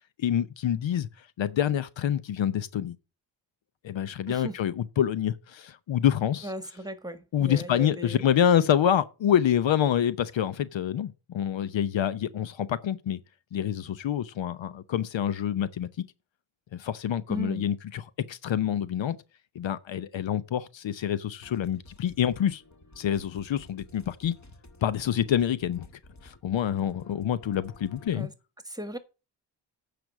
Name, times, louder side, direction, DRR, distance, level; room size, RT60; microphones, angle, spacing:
voice 1, 0.2-1.1 1.4-3.0 3.8-6.5 7.3-13.2 13.5-15.9 16.7-18.0 18.3-19.2 19.5-22.6 23.0-24.3 24.8-25.9 26.2-28.3, left 10 dB, 65° left, 0.8 m, -27 dB
voice 2, 4.3-4.6 6.4-8.2 17.3-17.7 28.1-28.3 28.6-29.0, right 1 dB, 10° right, 1.6 m, -37 dB
sound 1, 21.4-28.1, left 2 dB, 35° left, 2.1 m, -52 dB
9.2 x 5.2 x 7.3 m
cardioid pair, 60°, 49 cm